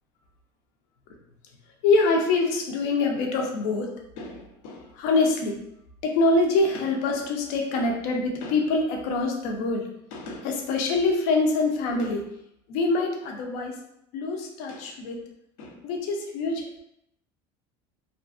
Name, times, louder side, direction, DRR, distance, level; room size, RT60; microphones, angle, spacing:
voice 1, 1.8-5.6 6.0-12.3 12.7-13.7 14.1-15.2 15.6-16.8, left 3 dB, 70° left, 2 dB, 0.6 m, -25 dB
2.5 x 2.4 x 2.4 m, 0.76 s
cardioid pair, 135°, 12 cm